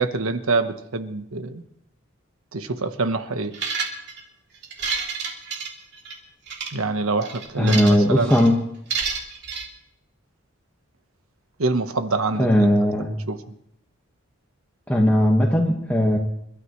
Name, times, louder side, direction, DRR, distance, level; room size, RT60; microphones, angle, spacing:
voice 1, 0.0-1.6 2.5-3.5 6.7-8.4 11.6-12.7 13.3-13.4, right 3 dB, 70° right, 9 dB, 1.2 m, -25 dB
sound 1, 3.5-4.2 4.6-6.2 6.5-6.7 7.2-8.0 8.3-8.5 8.9-9.7, right 5 dB, 50° right, 2.9 m, -29 dB
voice 2, 7.6-8.6 12.4-13.1 14.9-16.2, equal, 5° left, -2 dB, 1.5 m, -18 dB
30.0 x 13.0 x 3.2 m, 0.78 s
head